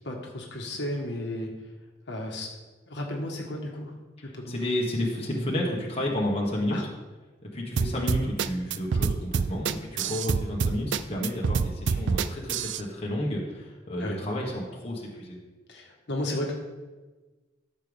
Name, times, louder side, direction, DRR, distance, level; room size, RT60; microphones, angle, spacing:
voice 1, 0.0-1.5 2.1-2.5 2.9-3.9 4.2-4.7 6.7-6.8 9.6-9.9 14.0-14.2 15.7-16.5, left 1 dB, 65° left, 0 dB, 1.5 m, -34 dB
voice 2, 4.5-6.8 7.4-15.4, left 1 dB, 30° left, -2 dB, 1.5 m, -31 dB
sound 1, 7.8-12.8, right 5 dB, 70° right, 0.4 m, -26 dB
13.5 x 6.7 x 3.5 m, 1.2 s
head